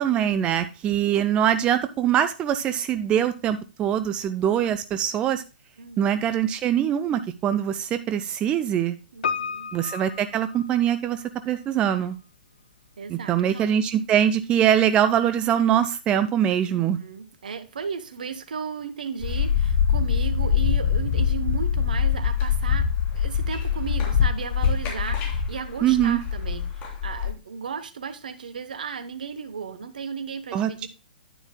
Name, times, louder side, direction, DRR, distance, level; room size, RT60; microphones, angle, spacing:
voice 1, 0.0-5.4 6.0-9.0 9.7-12.2 13.1-17.0 25.8-26.2 30.5-30.9, right 10 dB, 20° right, 11 dB, 0.4 m, -23 dB
voice 2, 5.8-6.2 9.1-9.7 13.0-13.8 16.7-30.9, right 6 dB, 60° right, 12 dB, 1.1 m, -35 dB
Piano, 9.2-11.3 11.5-11.6, left 6 dB, 60° left, 0.5 m, -32 dB
sound 1, 19.2-27.3, left 7 dB, 25° left, 3.3 m, -24 dB
9.8 x 9.7 x 2.2 m, 0.31 s
figure-of-eight pair, 115°, 5 cm